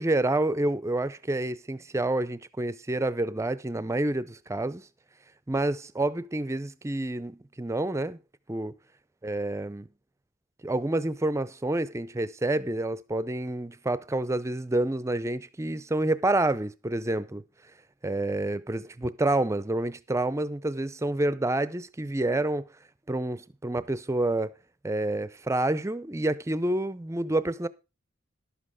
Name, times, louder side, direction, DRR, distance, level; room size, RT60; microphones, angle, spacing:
voice 1, 0.0-4.9 5.5-8.2 8.5-8.7 9.2-9.9 10.6-17.4 18.0-22.6 23.1-24.5 24.8-27.7, right 2 dB, 15° right, 0.5 m, -28 dB
11.5 x 7.6 x 4.9 m
head